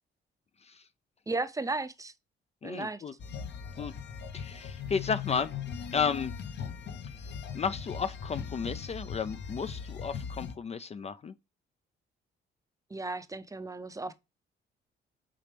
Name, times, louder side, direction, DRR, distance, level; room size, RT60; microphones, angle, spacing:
voice 1, 1.3-2.1 2.6-3.0 12.9-14.1, right 3 dB, 15° right, 0.6 m, -35 dB
voice 2, 2.6-3.1 3.8-3.9 4.3-5.5 5.9-6.3 7.5-11.3, left 6 dB, 35° left, 0.4 m, -33 dB
sound 1, 3.2-10.5, left 7 dB, 60° left, 0.9 m, -39 dB
7.6 x 4.0 x 3.3 m
cardioid pair, 90°, 20 cm